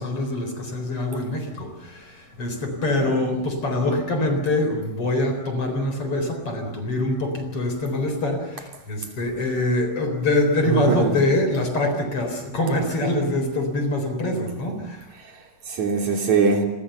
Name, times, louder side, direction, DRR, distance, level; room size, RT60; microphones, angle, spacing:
voice 1, 0.0-15.1, left 1 dB, 45° left, 7 dB, 4.9 m, -24 dB
voice 2, 10.7-11.1 15.2-16.7, right 5 dB, 60° right, 3 dB, 4.4 m, -22 dB
29.0 x 23.5 x 6.9 m, 0.90 s
omnidirectional pair, 3.9 m